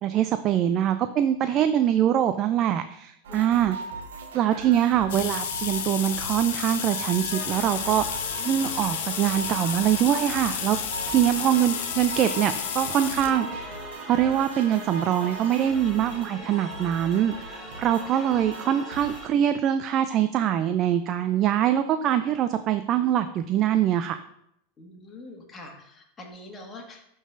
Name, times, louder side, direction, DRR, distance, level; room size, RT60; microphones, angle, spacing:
voice 1, 0.0-3.8 4.3-8.0 8.4-10.8 11.1-13.5 14.1-24.2, right 10 dB, 40° right, 10 dB, 0.3 m, -23 dB
voice 2, 1.4-1.8 3.3-3.8 8.3-8.7 11.0-11.5 13.3-13.6 16.0-16.5 18.1-18.4 24.8-27.1, left 2 dB, 25° left, 0 dB, 1.7 m, -45 dB
sound 1, 3.2-19.2, right 3 dB, 75° right, 1.1 m, -40 dB
sound 2, 5.1-13.4 14.2-14.3 15.6-15.7 16.0-16.1 16.4-16.5, left 9 dB, 70° left, 0.7 m, -32 dB
sound 3, 7.3-19.3, equal, ahead, 2.5 m, -41 dB
11.0 x 3.9 x 2.5 m, 0.76 s
hypercardioid pair, 95°, 0 cm